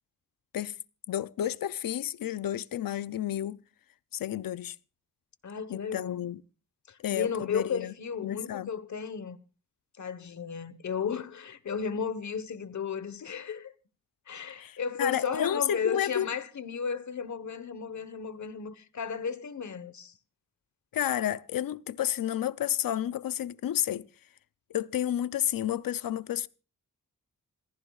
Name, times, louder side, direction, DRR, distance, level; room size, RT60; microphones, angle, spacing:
voice 1, 1.1-3.6 4.1-4.8 5.7-6.4 7.0-7.9 8.2-8.7 14.6-16.3 20.9-24.1 24.7-26.5, left 11 dB, 90° left, 0.6 m, -31 dB
voice 2, 5.4-6.2 6.9-9.4 10.0-13.7 14.3-20.1, left 6 dB, 60° left, 1.3 m, -34 dB
27.5 x 14.5 x 2.4 m
wide cardioid pair, 130°, 33 cm